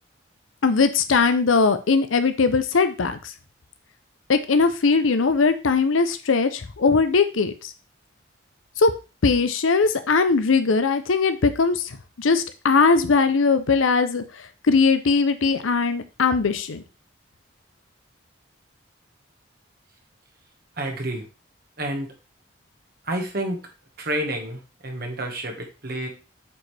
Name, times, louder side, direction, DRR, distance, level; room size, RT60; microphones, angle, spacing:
voice 1, 0.6-3.3 4.3-7.7 8.8-8.9 9.2-16.8, left 4 dB, 90° left, 10 dB, 0.7 m, -20 dB
voice 2, 20.8-21.2 21.8-22.1 23.0-23.6 24.0-26.1, right 1 dB, 50° right, 2 dB, 1.6 m, -29 dB
8.2 x 5.0 x 3.3 m, 0.31 s
head